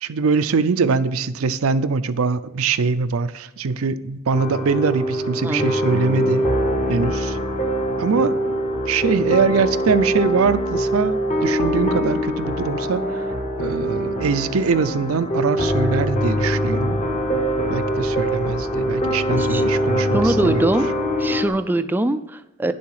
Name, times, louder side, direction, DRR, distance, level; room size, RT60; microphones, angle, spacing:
voice 1, 0.0-6.5 6.9-7.4 8.0-8.4 8.9-13.3 13.6-17.0 17.7-20.6, right 5 dB, 85° right, 12 dB, 0.5 m, -22 dB
sound 1, 4.3-21.5, equal, 35° left, 1.0 m, -23 dB
voice 2, 20.1-20.9 21.2-22.7, right 1 dB, 10° right, 9 dB, 0.3 m, -22 dB
10.0 x 7.0 x 4.8 m, 0.99 s
head